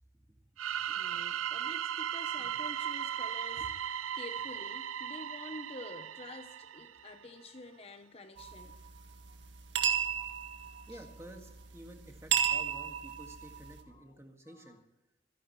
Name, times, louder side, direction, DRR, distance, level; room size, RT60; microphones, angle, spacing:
sound 1, 0.6-7.2, right 9 dB, 90° right, 0.5 m, -37 dB
voice 1, 0.9-8.8 10.0-10.2 10.7-11.0 13.9-14.2 14.4-14.8, left 2 dB, 30° left, 0.9 m, -49 dB
sound 2, 8.4-13.8, right 8 dB, 60° right, 1.8 m, -35 dB
voice 2, 10.9-14.8, right 1 dB, 15° right, 1.9 m, -51 dB
26.5 x 11.0 x 3.2 m
head